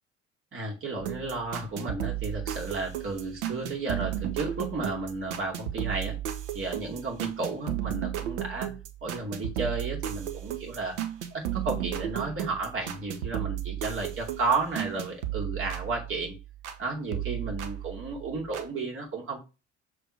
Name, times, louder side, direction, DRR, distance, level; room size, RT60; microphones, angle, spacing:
voice 1, 0.5-6.2 6.5-8.7 9.0-11.0 11.3-16.3 16.8-19.4, right 3 dB, 35° right, -1 dB, 2.6 m, -33 dB
sound 1, 1.0-16.8 17.1-18.7, right 12 dB, 70° right, 1.0 m, -34 dB
6.8 x 3.6 x 4.9 m, 0.29 s
figure-of-eight pair, 60°, 35 cm